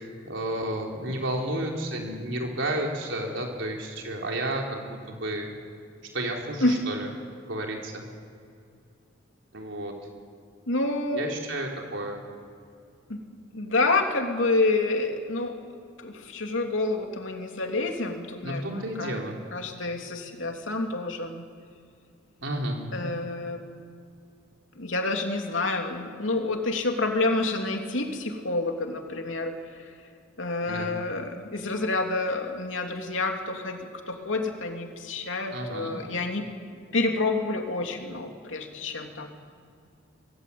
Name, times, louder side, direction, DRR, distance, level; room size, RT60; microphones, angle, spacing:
voice 1, 0.2-5.6 6.1-7.1 7.5-8.0 9.5-9.9 11.1-12.2 18.4-19.4 22.4-22.8 30.7-30.9 35.5-36.0, right 1 dB, 70° right, 0 dB, 4.4 m, -31 dB
voice 2, 10.7-11.3 13.1-13.2 13.5-15.6 16.0-21.5 22.9-23.6 24.8-29.5 29.8-29.9 30.4-36.5 36.9-39.3, left 2 dB, 85° left, 3 dB, 2.9 m, -28 dB
24.5 x 19.0 x 8.7 m, 2.4 s
head